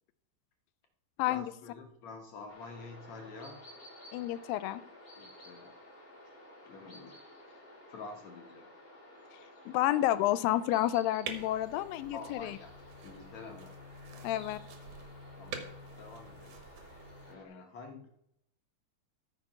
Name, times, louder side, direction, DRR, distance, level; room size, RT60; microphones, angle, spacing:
voice 1, 1.3-3.6 5.2-5.8 6.6-7.5 7.9-8.7 12.1-12.7 13.0-13.7 14.1-14.4 15.4-15.7 16.0-16.6 17.2-18.1, left 4 dB, 65° left, 3 dB, 1.9 m, -48 dB
sound 1, 2.5-17.4, left 1 dB, 20° left, 1.8 m, -54 dB
voice 2, 4.1-4.8 9.7-12.6 14.2-14.6, left 14 dB, 90° left, 15 dB, 2.3 m, -30 dB
sound 2, 11.2-17.3, right 4 dB, 70° right, 2.6 m, -47 dB
13.5 x 5.1 x 5.4 m, 0.77 s
omnidirectional pair, 4.0 m